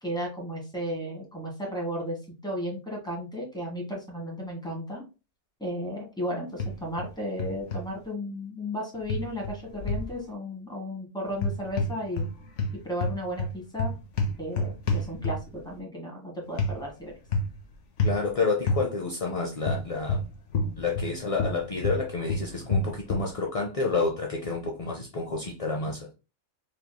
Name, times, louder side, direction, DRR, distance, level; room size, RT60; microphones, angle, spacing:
voice 1, 0.0-2.2 2.4-5.0 5.6-12.3 12.8-13.9 14.4-17.1, equal, 5° left, -1 dB, 1.3 m, -34 dB
sound 1, 6.6-7.1 7.4-7.8 9.1-10.1 11.3-12.3 12.6-15.6 16.6-16.8 17.3-17.6 18.0-18.2 18.7-18.8 19.6-21.1 21.4-23.3, left 2 dB, 70° left, 1.1 m, -28 dB
voice 2, 18.0-20.2 20.8-26.1, left 4 dB, 45° left, 0 dB, 0.5 m, -29 dB
5.2 x 3.0 x 2.2 m, 0.30 s
omnidirectional pair, 1.3 m